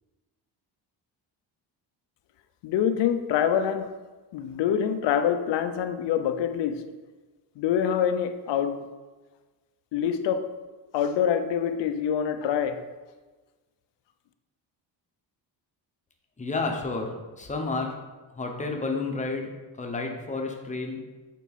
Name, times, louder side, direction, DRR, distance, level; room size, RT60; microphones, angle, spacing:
voice 1, 2.6-4.0 4.3-6.9 7.6-8.9 9.9-10.5 10.9-12.8, left 8 dB, 75° left, 8 dB, 0.6 m, -25 dB
voice 2, 16.4-17.9 18.3-19.5 19.8-21.0, left 3 dB, 15° left, 2 dB, 0.8 m, -30 dB
8.3 x 4.1 x 4.1 m, 1.3 s
cardioid pair, 160°, 43 cm